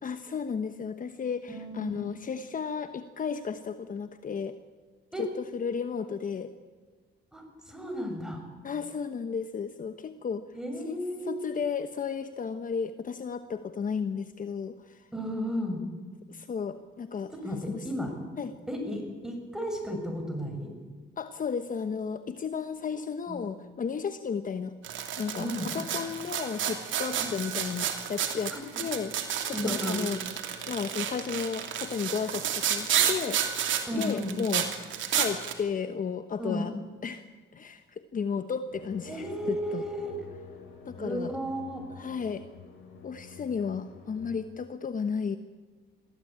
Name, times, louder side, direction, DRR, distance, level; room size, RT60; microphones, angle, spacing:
voice 1, 0.0-4.6 5.4-6.5 8.6-10.4 10.8-11.0 11.2-15.1 16.3-17.3 17.7-17.8 18.4-18.5 21.2-24.7 25.2-25.5 25.7-29.1 29.5-30.2 30.7-34.7 35.1-36.7 37.0-37.3 37.5-39.8 40.9-41.3 42.0-42.5 43.0-45.4, left 6 dB, 45° left, 10 dB, 1.1 m, -33 dB
voice 2, 1.5-2.1 5.1-5.3 7.3-8.4 10.5-11.5 15.1-15.8 17.4-18.1 18.7-20.7 23.3-23.5 25.4-25.7 27.1-27.3 28.5-28.6 29.5-30.0 33.9-34.4 36.4-36.7 39.1-40.2 41.0-41.9, equal, 5° right, 3 dB, 7.0 m, -33 dB
sound 1, 24.8-35.5, right 9 dB, 75° right, 3.0 m, -31 dB
sound 2, 38.7-44.4, left 4 dB, 75° left, 6.3 m, -48 dB
22.0 x 15.5 x 8.9 m, 1.4 s
cardioid pair, 90°, 20 cm